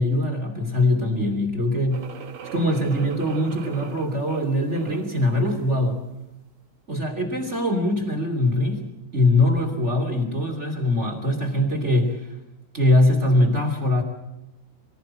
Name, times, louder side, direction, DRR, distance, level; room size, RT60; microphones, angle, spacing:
voice 1, 0.0-2.0 2.5-6.0 6.9-8.8 9.1-12.2 12.7-14.0, left 1 dB, 25° right, 5 dB, 1.7 m, -22 dB
sound 1, 1.9-5.2, right 6 dB, 55° right, 3.6 m, -40 dB
24.0 x 17.0 x 7.4 m, 0.92 s
omnidirectional pair, 5.7 m